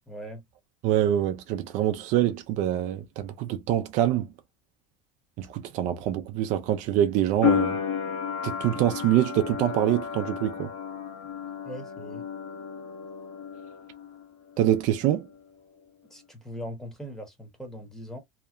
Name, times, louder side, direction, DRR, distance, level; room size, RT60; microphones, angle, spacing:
voice 1, 0.1-0.4 11.6-12.2 16.1-18.2, equal, 5° left, 1.0 m, -40 dB
voice 2, 0.8-4.3 5.4-7.8 8.4-10.7 14.6-15.3, right 12 dB, 55° right, 0.4 m, -25 dB
sound 1, 7.4-14.2 14.5-15.4, left 8 dB, 50° left, 1.2 m, -32 dB
2.8 x 2.1 x 2.4 m
supercardioid pair, 125°, 15 cm